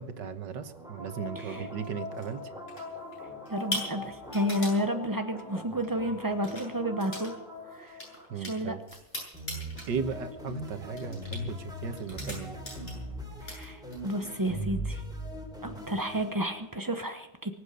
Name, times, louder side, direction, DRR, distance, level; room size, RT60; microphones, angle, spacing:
voice 1, 0.0-2.5 7.8-8.0 8.3-8.8 9.9-12.6, right 6 dB, 70° right, 9 dB, 1.8 m, -36 dB
sound 1, 0.6-8.8 9.3-16.7, equal, ahead, 3.7 m, -41 dB
voice 2, 1.4-1.7 3.5-7.3 7.7-8.0 8.4-8.8 13.4-15.0 15.6-17.5, equal, 30° right, 6 dB, 0.4 m, -31 dB
sound 2, 1.8-2.3 2.7-3.2 3.5-4.8 5.8-5.9 6.3-6.7 7.0-7.3 7.6-9.9 10.3-10.6 11.0-11.4 12.0-13.1 13.4-14.2, left 1 dB, 30° left, 8.2 m, -39 dB
24.0 x 8.1 x 6.7 m, 0.95 s
omnidirectional pair, 2.0 m